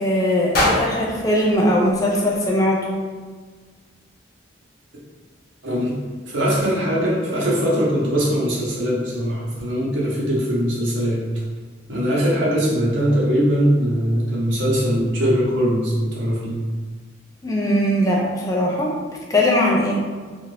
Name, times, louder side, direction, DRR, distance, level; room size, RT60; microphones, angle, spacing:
voice 1, 0.0-3.0 17.4-19.0 19.3-20.0, equal, 20° left, -2 dB, 0.4 m, -20 dB
sound 1, 0.5-2.7, left 1 dB, 50° left, 0.8 m, -25 dB
voice 2, 5.6-6.0 6.3-11.2 11.9-16.6, equal, 75° right, -5 dB, 0.9 m, -21 dB
2.7 x 2.5 x 3.1 m, 1.5 s
head